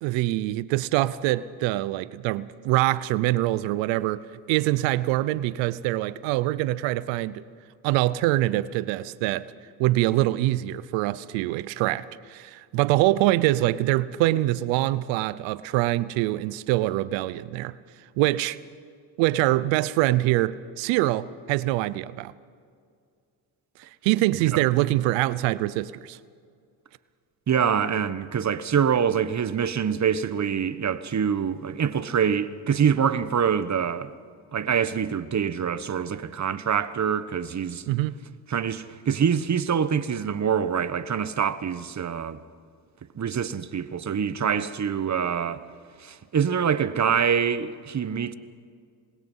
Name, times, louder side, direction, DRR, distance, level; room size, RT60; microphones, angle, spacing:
voice 1, 0.0-7.4 7.8-9.5 9.8-17.7 18.2-18.6 19.2-22.3 24.0-26.2 37.9-38.2, right 16 dB, 85° right, 0.8 m, -24 dB
voice 2, 24.3-24.6 27.5-34.1 34.5-37.8 38.5-42.4 43.1-45.6 46.0-48.3, right 7 dB, 40° right, 1.2 m, -25 dB
27.0 x 21.0 x 5.6 m
supercardioid pair, 70°, 44 cm